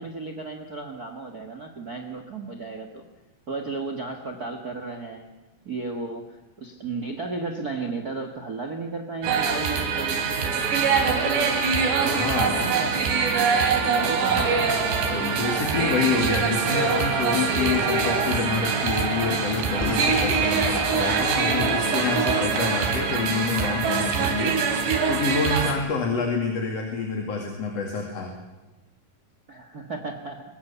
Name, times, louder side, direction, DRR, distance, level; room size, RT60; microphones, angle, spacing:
voice 1, 0.0-3.0 3.5-5.3 5.6-11.7 12.0-14.7 29.5-30.4, right 3 dB, 70° right, 6 dB, 0.8 m, -34 dB
sound 1, 9.2-25.7, right 5 dB, 85° right, 4.9 m, -24 dB
voice 2, 12.0-12.6 15.1-28.3, left 4 dB, 45° left, 2 dB, 2.9 m, -28 dB
Singing / Musical instrument, 14.2-23.1, right 2 dB, 45° right, 5.1 m, -33 dB
Boom, 19.8-22.7, left 1 dB, 10° left, 0.9 m, -36 dB
24.0 x 21.5 x 7.0 m, 1.1 s
omnidirectional pair, 4.8 m